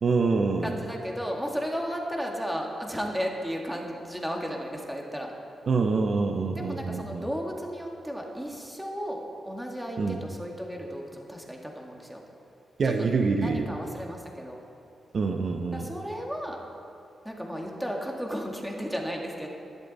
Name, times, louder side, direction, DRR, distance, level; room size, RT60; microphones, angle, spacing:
voice 1, 0.0-0.8 5.7-7.3 10.0-10.2 12.8-13.7 15.1-15.9, right 4 dB, 55° right, 5 dB, 0.9 m, -26 dB
voice 2, 0.6-5.3 6.5-12.2 13.0-13.1 13.4-14.6 15.7-16.6 17.2-19.5, equal, 5° right, 0 dB, 2.0 m, -34 dB
16.0 x 12.0 x 4.2 m, 2.6 s
cardioid pair, 90°, 0 cm